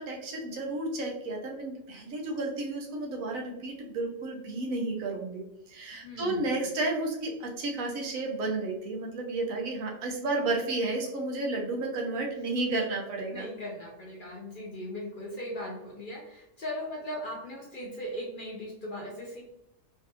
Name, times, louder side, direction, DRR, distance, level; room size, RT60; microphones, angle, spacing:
voice 1, 0.0-5.4 5.7-13.5, right 2 dB, 80° right, 1 dB, 1.2 m, -32 dB
voice 2, 6.0-6.5 12.6-12.8 13.3-19.4, left 1 dB, 55° left, -2 dB, 0.6 m, -38 dB
3.8 x 2.5 x 2.6 m, 0.84 s
omnidirectional pair, 1.4 m